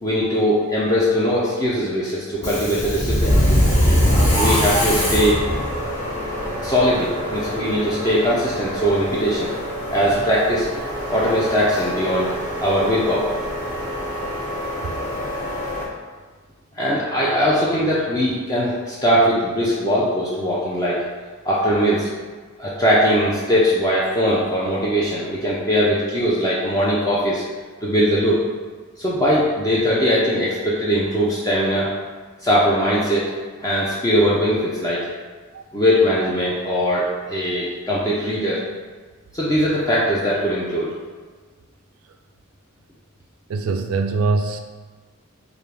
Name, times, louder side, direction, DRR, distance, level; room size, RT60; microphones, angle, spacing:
voice 1, 0.0-3.3 4.3-5.4 6.6-9.5 9.9-10.7 11.1-12.3 12.6-13.3 16.7-21.0 21.4-22.1 22.6-27.4 27.8-28.4 29.0-31.9 32.4-33.3 33.6-35.0 35.7-38.6 39.3-40.9, equal, 15° left, -7 dB, 0.4 m, -20 dB
Subway metro underground, 2.3-15.8, equal, 35° left, 1.3 m, -23 dB
voice 2, 43.5-44.6, right 3 dB, 70° right, 6 dB, 0.3 m, -22 dB
3.5 x 2.4 x 3.3 m, 1.4 s
head